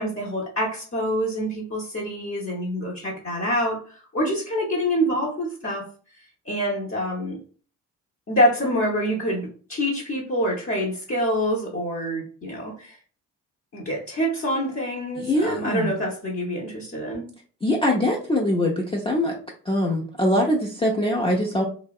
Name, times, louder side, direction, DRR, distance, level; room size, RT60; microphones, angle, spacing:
voice 1, 0.0-5.9 6.4-7.4 8.3-13.0 13.7-17.3, equal, 30° left, -3 dB, 0.8 m, -26 dB
voice 2, 15.2-15.9 17.6-19.3 19.7-21.6, left 1 dB, 15° left, -2 dB, 0.4 m, -23 dB
2.6 x 2.1 x 2.3 m, 0.42 s
hypercardioid pair, 45°, 47 cm